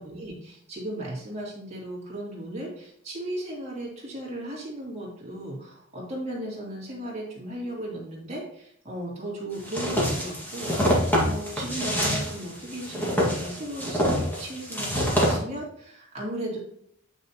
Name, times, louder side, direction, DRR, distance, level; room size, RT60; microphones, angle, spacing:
voice 1, 0.0-16.6, right 1 dB, 30° right, -4 dB, 2.4 m, -36 dB
sound 1, 9.7-15.4, equal, 10° left, 1.7 m, -26 dB
8.2 x 6.0 x 2.9 m, 0.71 s
head